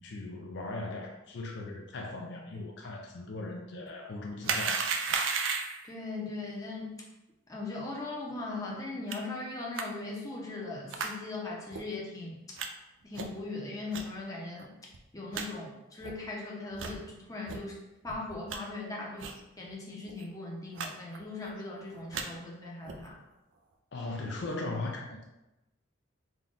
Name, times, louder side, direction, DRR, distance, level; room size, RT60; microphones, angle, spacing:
voice 1, 0.0-4.8 23.9-25.2, left 2 dB, 55° left, 1 dB, 0.4 m, -38 dB
sound 1, 4.4-5.9 9.1-9.2 9.8-9.9 10.9-11.1 11.7-11.8 12.6-12.7 13.1-13.4 13.9-14.0 14.6-14.7 14.9-15.0 15.3-15.5 16.0-16.1 16.7-17.0 17.5-17.6 18.1-18.6 19.2-19.4 19.7-19.8 20.1-20.2 20.8-20.9 21.1-21.5 21.9-22.3 22.8-23.1, right 5 dB, 65° right, 0.4 m, -34 dB
voice 2, 5.8-7.0 7.5-12.4 13.0-14.7 15.1-17.7 18.0-19.3 19.6-23.2, left 3 dB, 15° left, -3 dB, 0.7 m, -39 dB
3.6 x 2.3 x 3.8 m, 0.98 s
head